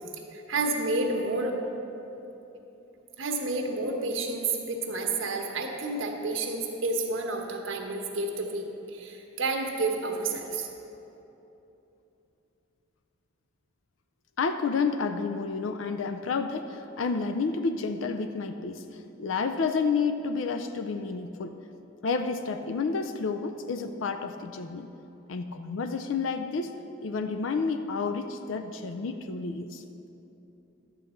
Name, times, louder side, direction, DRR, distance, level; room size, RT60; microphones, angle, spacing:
voice 1, 0.3-1.6 3.2-10.7, right 3 dB, 90° right, 2 dB, 1.2 m, -30 dB
voice 2, 14.4-21.5 22.0-24.9 25.3-26.7 27.0-29.8, left 4 dB, 80° left, 8 dB, 0.5 m, -30 dB
11.5 x 8.3 x 4.4 m, 2.9 s
head